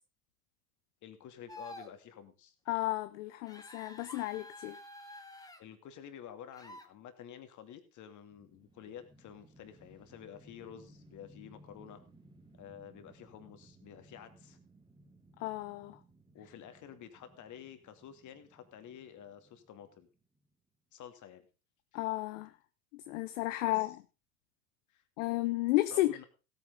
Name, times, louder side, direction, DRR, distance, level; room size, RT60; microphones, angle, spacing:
voice 1, 1.0-2.5 5.6-12.0 12.5-14.6 16.3-20.1 20.9-21.5 23.6-24.0 24.9-25.0 25.9-26.3, left 9 dB, 45° left, 2.6 m, -50 dB
sound 1, 1.5-1.9 3.5-5.6 6.5-6.9, left 1 dB, 10° left, 1.9 m, -49 dB
voice 2, 2.7-4.8 15.4-16.0 21.9-22.5 22.9-23.9 25.2-26.2, left 18 dB, 65° left, 0.8 m, -32 dB
sound 2, 8.3-20.5, right 1 dB, 10° right, 2.7 m, -61 dB
16.5 x 9.2 x 3.9 m
hypercardioid pair, 80°, 41 cm